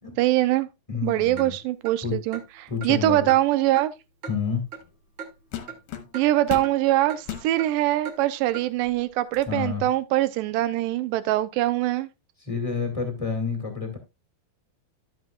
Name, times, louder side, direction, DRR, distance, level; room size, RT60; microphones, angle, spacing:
voice 1, 0.2-0.7 1.0-3.9 6.1-12.1, right 15 dB, 80° right, 2.2 m, -23 dB
voice 2, 0.9-1.5 2.0-2.2 2.7-3.3 4.3-4.6 9.5-9.8 12.4-14.0, left 5 dB, 15° left, 1.3 m, -29 dB
Clock, 1.4-1.5 1.8-2.0 2.3-2.5 2.8-2.9 3.3-3.4 3.8-3.9 4.2-4.4 4.7-4.8 5.2-5.3 5.7-5.8 6.1-6.2 6.6-6.8 7.1-7.2 7.6-7.7 8.0-8.2 8.5-8.7, right 6 dB, 55° right, 1.3 m, -37 dB
sound 1, 4.8-5.0 5.5-6.8 7.2-7.5 8.2-8.3 8.8-9.5, left 9 dB, 65° left, 2.1 m, -36 dB
12.5 x 7.4 x 2.3 m
omnidirectional pair, 4.1 m